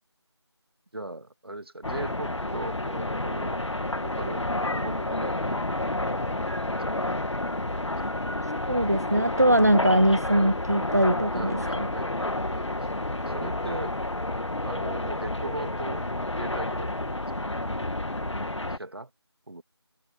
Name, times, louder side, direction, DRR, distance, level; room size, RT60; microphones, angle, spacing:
voice 1, 0.9-3.6 4.0-5.6 6.2-7.1 11.3-12.1 12.5-12.8 13.2-14.0 14.6-16.0 16.4-17.4 18.7-19.1 19.5-19.6, right 2 dB, 55° right, 2.4 m, -39 dB
sound 1, 1.8-18.8, left 1 dB, 85° left, 2.1 m, -30 dB
voice 2, 8.7-11.9, right 1 dB, 35° right, 0.5 m, -22 dB
figure-of-eight pair, 175°, 15 cm